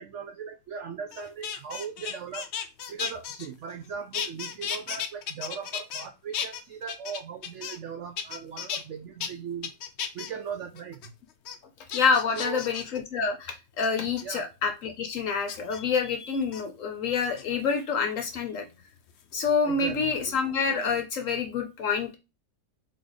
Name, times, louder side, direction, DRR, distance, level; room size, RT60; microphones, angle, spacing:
voice 1, 0.0-2.4 2.9-9.7 10.1-11.1 12.3-12.6 14.2-14.5 19.7-20.2, right 7 dB, 80° right, 6 dB, 0.6 m, -38 dB
sound 1, 1.1-3.9 4.1-6.1 6.3-7.9 8.2-8.8 9.2-9.3 9.6-10.3 10.8-11.1 11.5-11.6 11.9-13.0 13.8-14.2 15.5-15.8 16.4-16.6 17.2-17.8 19.2-20.4 20.7-21.0, left 8 dB, 90° left, 0.5 m, -35 dB
voice 2, 11.9-18.6 19.3-22.2, left 5 dB, 60° left, 5 dB, 0.9 m, -27 dB
3.7 x 3.2 x 3.9 m, 0.27 s
omnidirectional pair, 1.8 m